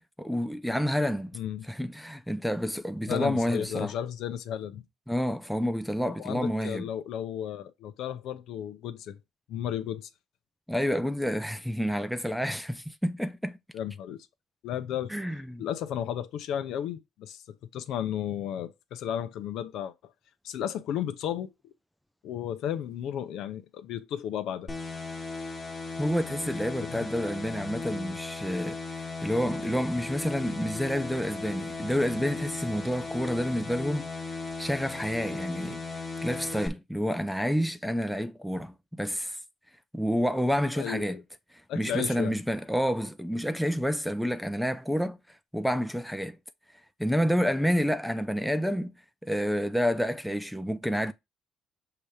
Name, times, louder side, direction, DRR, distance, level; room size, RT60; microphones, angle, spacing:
voice 1, 0.0-1.4 1.7-3.9 5.1-6.8 10.7-13.6 15.1-15.6 26.0-39.4 39.9-41.2 41.7-45.2 45.5-46.4 47.0-48.9 49.2-51.1, equal, ahead, 0.5 m, -29 dB
voice 2, 1.3-1.6 3.1-4.8 6.1-9.2 9.5-10.1 13.7-14.3 14.6-15.1 15.6-17.4 17.7-19.9 20.4-21.5 22.2-24.7 26.9-27.1 40.8-41.2 41.7-42.3, left 10 dB, 70° left, 0.8 m, -33 dB
sound 1, 24.7-36.7, left 3 dB, 20° left, 1.2 m, -37 dB
6.8 x 3.0 x 4.9 m
cardioid pair, 155°, 0 cm